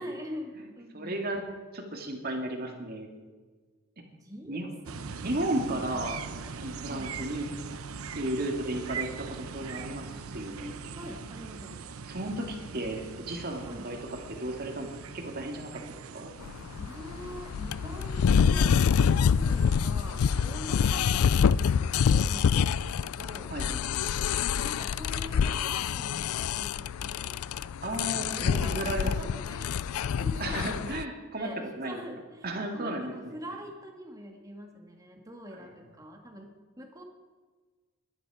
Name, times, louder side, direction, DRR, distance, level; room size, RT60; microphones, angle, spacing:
voice 1, 0.0-1.2 4.2-6.1 6.9-7.2 11.0-12.0 13.6-13.9 16.7-23.6 24.6-27.4 27.7-29.7 30.1-30.9 31.4-32.5 32.7-36.5 36.8-37.0, equal, 15° right, 2 dB, 2.1 m, -44 dB
voice 2, 0.9-1.5 1.7-3.1 4.5-4.7 5.2-6.2 6.6-7.5 8.1-10.7 12.0-15.8 16.1-16.3 20.8-21.0 23.5-23.8 27.8-29.1 30.4-31.5 31.8-32.0 32.4-33.4, right 1 dB, 45° right, 3 dB, 2.4 m, -34 dB
sound 1, 4.9-22.8, right 5 dB, 85° right, 0.8 m, -42 dB
sound 2, 16.4-31.0, left 7 dB, 90° left, 0.4 m, -26 dB
21.5 x 11.0 x 5.0 m, 1.4 s
head